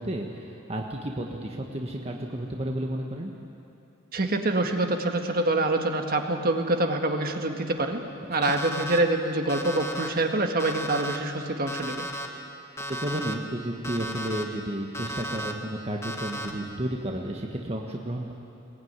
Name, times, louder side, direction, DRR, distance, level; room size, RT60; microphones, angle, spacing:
voice 1, 0.0-3.3 13.0-18.3, right 1 dB, 30° right, 1 dB, 1.4 m, -32 dB
voice 2, 4.1-8.0 8.3-12.1, right 2 dB, 50° right, 4 dB, 1.8 m, -26 dB
Alarm, 8.4-9.0 9.5-10.1 10.6-11.2 11.7-12.3 12.8-13.3 13.8-14.4 14.9-15.5 16.0-16.5, equal, 15° left, 1.6 m, -34 dB
21.0 x 20.0 x 9.6 m, 2.7 s
head